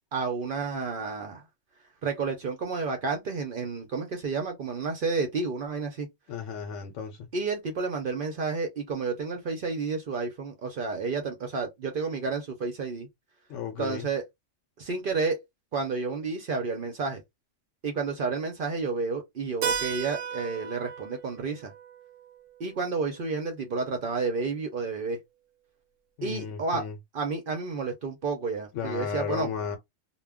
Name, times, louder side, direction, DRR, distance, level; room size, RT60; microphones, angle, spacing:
voice 1, 0.1-1.5 2.0-6.1 7.3-13.1 13.8-14.2 14.8-15.4 15.7-17.2 17.8-21.7 22.6-25.2 26.2-26.9 27.1-29.5, right 4 dB, 55° right, 0.7 m, -31 dB
voice 2, 6.3-7.3 13.5-14.1 26.2-27.0 28.7-29.8, left 7 dB, 75° left, 0.9 m, -34 dB
Keyboard (musical), 19.6-24.1, right 7 dB, 80° right, 0.9 m, -36 dB
2.2 x 2.1 x 3.4 m
omnidirectional pair, 1.3 m